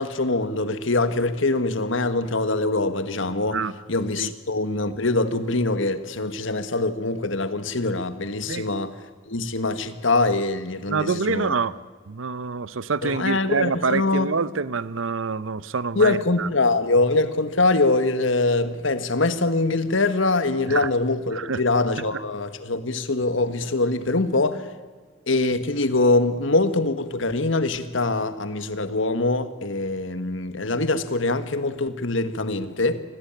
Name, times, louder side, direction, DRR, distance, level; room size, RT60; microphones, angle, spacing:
voice 1, 0.0-3.6 3.9-8.9 9.3-11.5 13.0-14.3 16.0-24.7 25.3-33.0, left 2 dB, 75° left, 1.7 m, -23 dB
voice 2, 10.9-11.8 12.1-16.5 20.7-20.9 21.3-21.6, right 4 dB, 85° right, 0.7 m, -26 dB
25.0 x 18.0 x 9.0 m
head